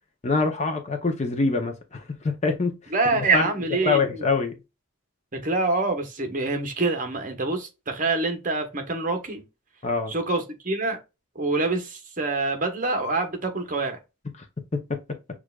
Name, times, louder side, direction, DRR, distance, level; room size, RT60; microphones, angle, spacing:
voice 1, 0.2-2.7 3.3-3.5 3.8-4.5 9.8-10.1 14.7-14.8, left 4 dB, 30° left, 0.6 m, -24 dB
voice 2, 2.9-4.3 5.3-9.4 10.1-11.0 11.3-14.0, right 3 dB, 35° right, 1.0 m, -26 dB
6.4 x 2.4 x 2.2 m
head